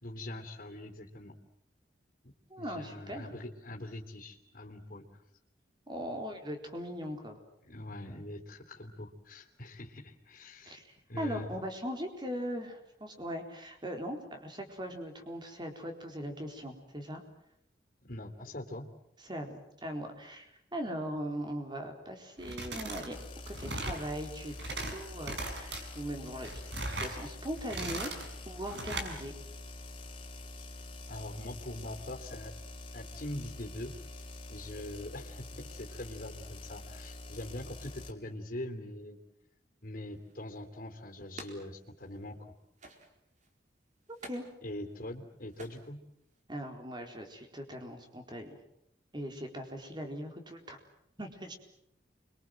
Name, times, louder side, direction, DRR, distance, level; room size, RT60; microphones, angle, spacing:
voice 1, 0.0-1.3 2.2-5.1 7.6-10.8 11.1-11.5 18.1-18.9 31.1-32.5 32.9-39.2 39.8-42.5 44.6-46.0, left 1 dB, 50° left, 2 dB, 3.3 m, -43 dB
voice 2, 2.5-3.3 5.9-7.4 10.7-17.2 19.2-23.2 23.5-28.1 28.5-29.3 44.2-44.4 46.5-48.5 49.1-50.8 51.2-51.6, equal, 25° right, 4 dB, 4.2 m, -40 dB
sound 1, 22.4-23.1 23.4-24.0 24.4-24.9 25.2-25.8 26.3-27.2 27.6-28.3 28.7-29.1, right 2 dB, 80° right, 6.1 m, -38 dB
sound 2, 23.1-38.1, left 2 dB, 30° left, 3.1 m, -46 dB
sound 3, 40.1-42.4 42.7-43.6 44.0-46.4, right 2 dB, 45° right, 4.3 m, -52 dB
29.5 x 24.0 x 7.8 m, 0.76 s
head